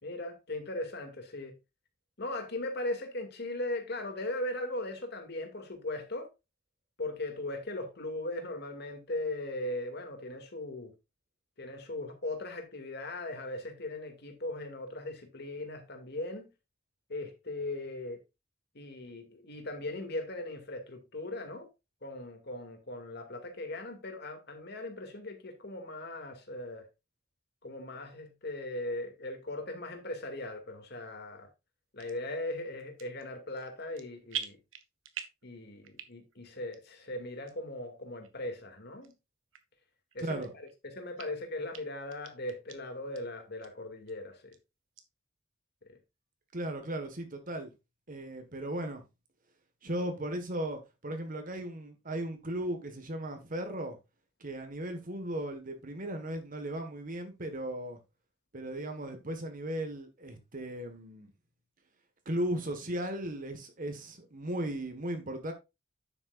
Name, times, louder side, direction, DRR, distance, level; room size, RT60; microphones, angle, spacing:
voice 1, 0.0-1.6 2.2-6.3 7.0-10.9 11.6-16.5 17.1-18.2 18.7-21.7 22.0-26.9 27.6-31.5 31.9-34.6 35.4-39.1 40.1-44.5 45.9-46.0, left 2 dB, 60° left, 2.3 m, -39 dB
sound 1, 32.0-32.2 32.8-33.3 33.6-34.0 34.3-35.5 35.8-36.3 36.7-36.8 37.5-37.6 38.2-38.3 39.0-39.1 39.5-39.6 40.1-40.8 41.2-41.3 41.7-41.8 42.1-42.8 43.1-43.2 43.6-43.7 44.1-44.6 45.0-45.1, right 9 dB, 85° right, 1.4 m, -42 dB
voice 2, 40.2-40.5 46.5-47.7 48.1-49.0 49.8-54.0 54.4-58.0 58.5-61.3 62.2-65.5, right 1 dB, 45° right, 1.6 m, -36 dB
9.9 x 7.9 x 2.5 m
head